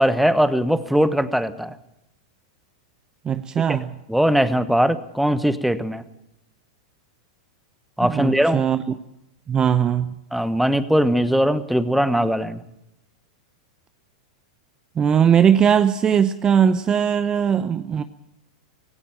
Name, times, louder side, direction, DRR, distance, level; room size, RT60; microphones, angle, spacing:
voice 1, 0.0-1.8 4.1-6.0 8.0-8.6 10.3-12.6, equal, ahead, 13 dB, 1.1 m, -20 dB
voice 2, 3.2-3.9 8.0-8.8 9.5-10.1 15.0-18.0, right 8 dB, 25° right, 13 dB, 0.7 m, -19 dB
17.5 x 17.0 x 8.8 m, 0.83 s
hypercardioid pair, 100°, 3 cm